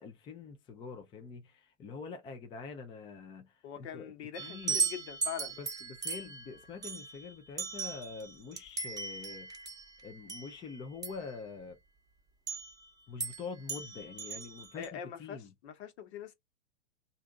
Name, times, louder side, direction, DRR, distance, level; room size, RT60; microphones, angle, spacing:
voice 1, 0.0-4.1 4.4-4.8 5.6-9.5 10.0-11.8 13.1-15.5, left 5 dB, 15° left, 0.4 m, -45 dB
voice 2, 3.6-5.5 14.8-16.3, left 8 dB, 60° left, 1.3 m, -43 dB
sound 1, 4.3-11.3 12.5-12.8 13.2-13.4 13.7-14.9, right 5 dB, 10° right, 0.9 m, -37 dB
3.4 x 2.6 x 3.6 m
hypercardioid pair, 130°, 37 cm